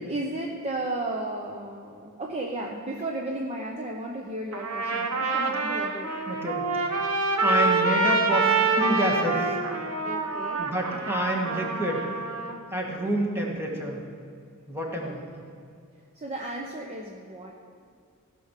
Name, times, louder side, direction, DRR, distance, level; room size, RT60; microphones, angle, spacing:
voice 1, 0.1-6.1 10.1-10.7 13.7-13.8 15.0-15.2 15.5-15.6 16.1-17.6, right 1 dB, 30° right, 0 dB, 0.8 m, -34 dB
Trumpet, 4.5-12.5, right 3 dB, 75° right, 1.1 m, -26 dB
voice 2, 6.3-6.7 7.4-9.6 10.6-12.1 12.7-14.0 14.7-15.2, right 1 dB, 10° right, -1 dB, 1.8 m, -28 dB
15.5 x 6.1 x 6.6 m, 2.3 s
head